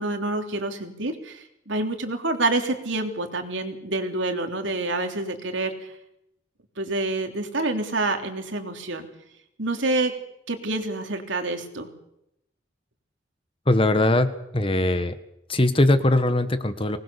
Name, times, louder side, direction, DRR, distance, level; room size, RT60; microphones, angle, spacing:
voice 1, 0.0-6.0 6.8-9.1 9.6-10.1 10.5-11.9, right 2 dB, 85° right, 5 dB, 3.3 m, -27 dB
voice 2, 13.7-15.1 15.5-17.0, left 1 dB, 30° left, 11 dB, 1.5 m, -21 dB
24.0 x 19.5 x 7.0 m, 0.82 s
head